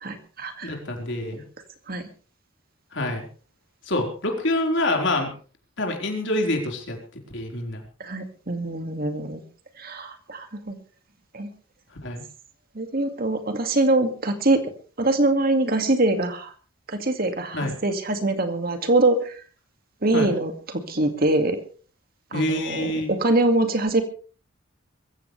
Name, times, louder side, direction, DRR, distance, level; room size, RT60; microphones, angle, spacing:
voice 1, 0.0-0.8 1.9-2.1 8.0-9.4 9.8-10.8 11.3-11.5 12.7-14.6 15.0-16.5 16.9-19.4 20.0-21.6 22.3-24.0, right 2 dB, 45° right, 6 dB, 2.2 m, -23 dB
voice 2, 0.6-1.4 2.9-3.2 3.9-5.3 5.8-7.0 7.3-7.8 12.0-12.2 17.5-17.8 20.1-20.3 22.3-23.1, left 1 dB, 60° left, 1 dB, 4.6 m, -26 dB
22.5 x 15.5 x 3.4 m, 0.39 s
head